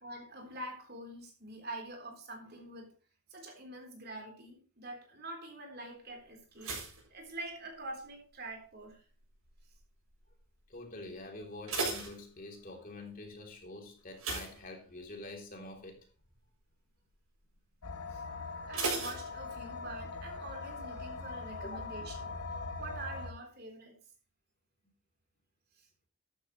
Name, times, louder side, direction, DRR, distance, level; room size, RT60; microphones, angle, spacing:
voice 1, 0.0-2.9 3.3-6.7 7.1-9.0 18.1-18.2 18.7-22.4 22.8-24.0 25.8-25.9, right 2 dB, 45° right, 3 dB, 3.8 m, -45 dB
sound 1, 6.6-8.1 8.3-8.8 9.4-9.8 10.1-10.2 10.6-10.7 11.3-12.9 14.1-15.3 15.7-15.9 16.3-16.4 18.7-19.9 20.2-20.3, right 3 dB, 75° right, 7.7 m, -38 dB
voice 2, 10.7-16.1 18.3-18.4 21.6-21.8, left 2 dB, 40° left, 2 dB, 3.2 m, -46 dB
sound 2, 17.8-23.3, left 3 dB, 80° left, 1.3 m, -42 dB
13.5 x 11.5 x 3.2 m, 0.38 s
head